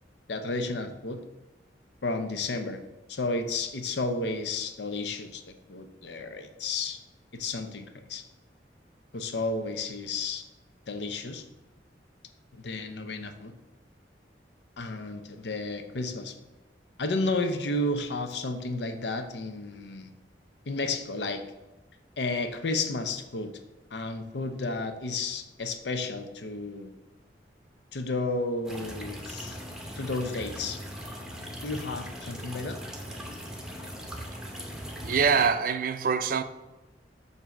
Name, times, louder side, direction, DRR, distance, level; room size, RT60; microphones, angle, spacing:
voice 1, 0.3-1.2 2.0-2.8 3.1-7.0 7.3-8.2 9.1-10.4 10.9-11.5 12.5-13.5 14.8-16.4 17.0-20.1 20.7-21.4 22.2-23.5 23.9-26.9 27.9-29.6 30.0-30.8 31.6-32.8, left 2 dB, 80° left, 0.7 m, -32 dB
sound 1, 28.6-35.5, equal, 5° right, 0.7 m, -40 dB
voice 2, 35.0-36.4, right 6 dB, 50° right, 0.4 m, -24 dB
7.3 x 2.7 x 5.9 m
head